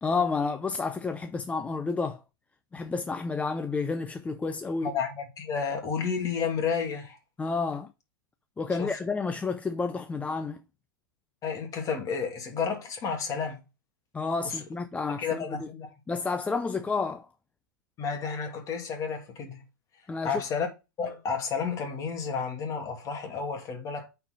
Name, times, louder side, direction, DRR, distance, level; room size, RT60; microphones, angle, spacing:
voice 1, 0.0-2.2 2.7-4.9 7.4-7.9 8.6-10.6 14.1-15.7 16.1-17.3 20.1-20.4, left 4 dB, 10° left, 0.5 m, -30 dB
voice 2, 4.8-7.2 8.8-8.9 11.4-13.6 14.4-14.6 15.2-15.9 18.0-19.6 20.2-20.7 21.0-24.1, left 6 dB, 30° left, 2.6 m, -31 dB
8.9 x 4.6 x 3.9 m
hypercardioid pair, 115°, 12 cm